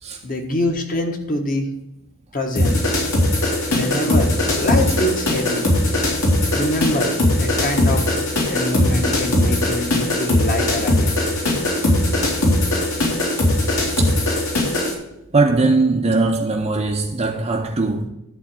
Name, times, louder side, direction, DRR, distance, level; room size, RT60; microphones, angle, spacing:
voice 1, 0.2-1.7 2.3-2.8 3.7-5.7 6.5-8.0 8.5-11.2, left 1 dB, 40° left, 1.4 m, -24 dB
sound 1, 2.6-14.9, left 1 dB, 65° left, 2.9 m, -19 dB
voice 2, 13.7-14.1 15.3-18.1, right 3 dB, 30° right, 0.6 m, -20 dB
11.0 x 3.9 x 7.6 m
head